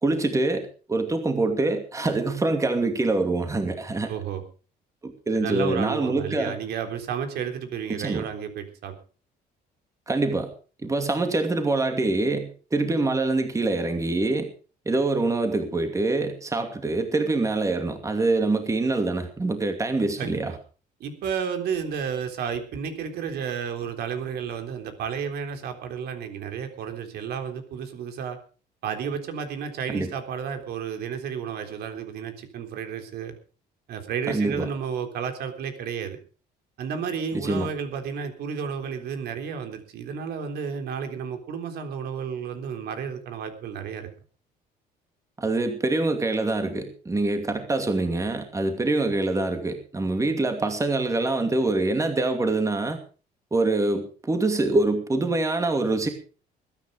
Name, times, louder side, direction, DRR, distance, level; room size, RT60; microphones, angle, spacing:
voice 1, 0.0-4.1 5.0-6.6 7.9-8.2 10.1-10.5 10.8-14.5 14.9-20.5 29.9-30.1 34.3-34.7 37.3-37.7 45.4-53.0 53.5-56.1, right 2 dB, 20° right, 6 dB, 2.6 m, -25 dB
voice 2, 4.1-4.4 5.3-9.0 20.2-20.4 21.0-28.4 28.8-33.4 33.9-36.2 36.8-44.1, right 7 dB, 70° right, 6 dB, 3.7 m, -32 dB
21.0 x 9.9 x 5.1 m, 0.38 s
cardioid pair, 110°, 17 cm